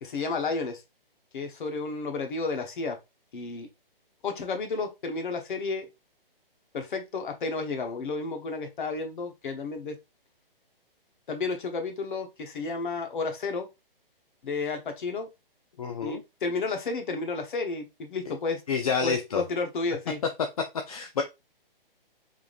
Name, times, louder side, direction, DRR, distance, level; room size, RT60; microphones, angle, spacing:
voice 1, 0.0-0.8 1.3-3.0 3.3-3.7 4.2-5.9 6.7-10.0 11.3-13.7 14.4-15.3 16.0-18.6 19.0-20.2, left 3 dB, 55° left, 5 dB, 1.0 m, -32 dB
voice 2, 15.8-16.2 18.7-19.4 20.9-21.2, left 6 dB, 40° left, 5 dB, 0.4 m, -28 dB
3.6 x 3.4 x 2.4 m, 0.23 s
hypercardioid pair, 145°, 29 cm